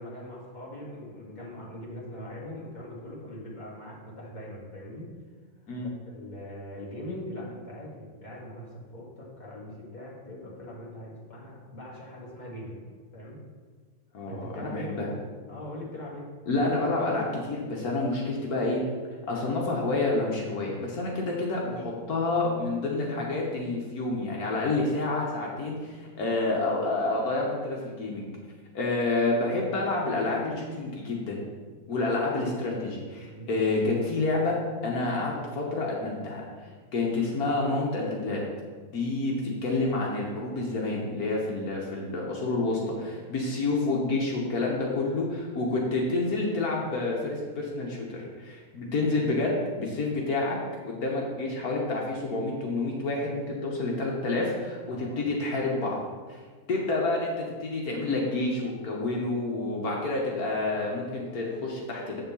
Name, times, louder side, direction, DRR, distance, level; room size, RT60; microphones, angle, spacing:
voice 1, 0.0-5.1 5.8-12.9 13.1-13.4 14.2-16.3 33.3-33.5 54.9-55.2, left 1 dB, 30° left, -4 dB, 2.0 m, -41 dB
voice 2, 14.1-15.1 16.5-18.8 19.3-28.3 28.7-31.4 31.9-34.6 34.8-38.4 38.9-50.6 50.8-56.0 56.3-56.4 56.7-62.2, left 2 dB, 75° left, -2 dB, 1.6 m, -29 dB
8.6 x 3.9 x 7.0 m, 1.5 s
omnidirectional pair, 1.6 m